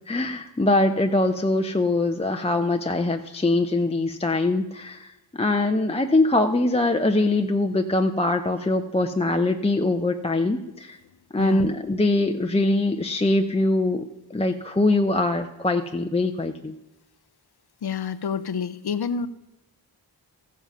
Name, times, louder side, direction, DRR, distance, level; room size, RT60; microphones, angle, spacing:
voice 1, 0.1-11.0 11.3-14.0 14.3-16.7, left 2 dB, 15° left, 5 dB, 0.6 m, -23 dB
voice 2, 11.4-11.7 17.8-19.3, left 6 dB, 60° left, 12 dB, 0.7 m, -28 dB
14.0 x 7.3 x 5.5 m, 0.96 s
cardioid pair, 45°, 44 cm